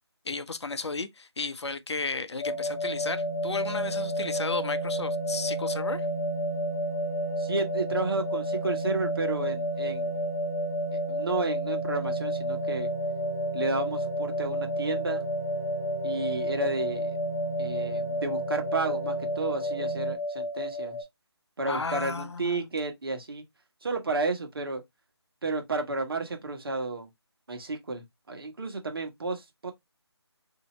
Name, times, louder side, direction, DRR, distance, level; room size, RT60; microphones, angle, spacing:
voice 1, 0.2-6.1 21.6-22.7, left 4 dB, 75° left, 0.6 m, -34 dB
sound 1, 2.4-21.0, left 1 dB, 35° left, 2.4 m, -31 dB
sound 2, 2.4-20.2, right 6 dB, 35° right, 0.6 m, -37 dB
voice 2, 7.4-10.2 11.1-12.9 13.5-15.2 16.0-17.2 17.6-21.0 21.6-23.4 23.8-24.8 25.4-27.1 27.5-29.7, right 3 dB, 55° right, 1.0 m, -32 dB
4.0 x 2.7 x 2.9 m
figure-of-eight pair, 160°, 14 cm